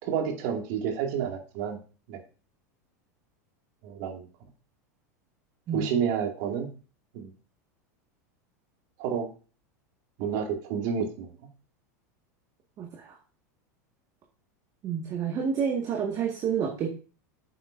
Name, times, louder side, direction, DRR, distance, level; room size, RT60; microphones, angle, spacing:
voice 1, 0.0-1.8 2.1-2.2 3.8-4.3 5.7-6.7 7.1-7.3 9.0-9.3 10.2-11.3, right 7 dB, 60° right, 3 dB, 2.3 m, -29 dB
voice 2, 12.8-13.2 14.8-16.9, right 7 dB, 40° right, 2 dB, 1.8 m, -29 dB
9.6 x 7.9 x 2.6 m, 0.36 s
supercardioid pair, 115°, 9 cm